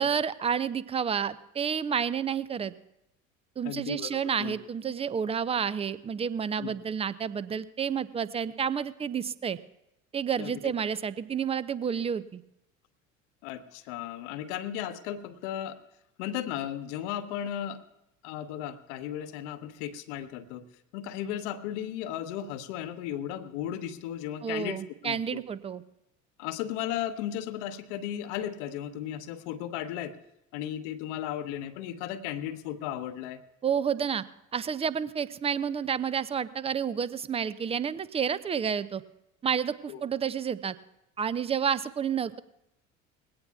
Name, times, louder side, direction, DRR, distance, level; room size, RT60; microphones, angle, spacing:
voice 1, 0.0-2.7 3.6-9.6 10.1-12.4 24.4-25.8 33.6-34.2 34.5-39.0 39.4-40.7 41.2-42.4, right 7 dB, 15° right, 17 dB, 0.5 m, -30 dB
voice 2, 3.6-4.5 6.6-6.7 10.4-10.7 13.4-15.8 16.2-17.8 18.2-20.7 20.9-25.4 26.4-30.2 30.5-33.4 39.9-40.0, left 10 dB, 60° left, 11 dB, 0.9 m, -35 dB
20.5 x 17.0 x 2.3 m, 0.85 s
figure-of-eight pair, 65°, 39 cm